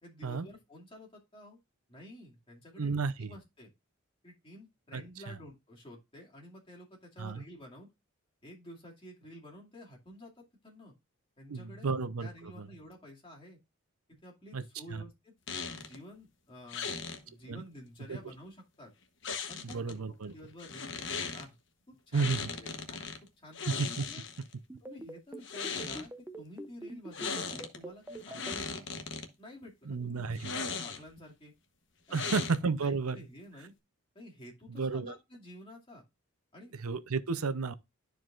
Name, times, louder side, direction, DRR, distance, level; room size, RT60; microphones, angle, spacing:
voice 1, 0.0-1.6 1.9-2.9 3.2-3.7 4.2-7.9 8.4-10.9 11.4-11.9 12.2-13.6 14.1-15.3 15.8-16.9 17.2-18.9 19.5-21.1 21.3-21.6 21.9-23.1 23.4-23.6 24.0-24.2 24.8-26.1 26.4-28.9 29.4-31.5 32.1-33.7 34.1-36.0 36.5-36.7, left 1 dB, 25° left, 2.3 m, -51 dB
voice 2, 2.8-3.3 4.9-5.3 7.2-7.4 11.5-12.3 12.6-12.7 14.5-14.6 14.9-15.0 17.5-17.6 18.1-18.2 19.6-20.3 22.1-22.5 23.7-24.1 29.9-30.5 32.1-33.3 34.7-35.1 36.7-37.7, right 4 dB, 90° right, 0.7 m, -32 dB
sound 1, 15.5-16.0 16.7-17.2 19.2-19.9 20.6-21.5 22.1-23.2 23.5-24.5 25.3-26.1 27.1-27.8 28.1-29.3 30.3-31.2 32.1-32.8, left 5 dB, 60° left, 1.1 m, -38 dB
sound 2, 24.7-28.5, right 1 dB, 10° right, 0.6 m, -43 dB
12.5 x 4.6 x 2.5 m
head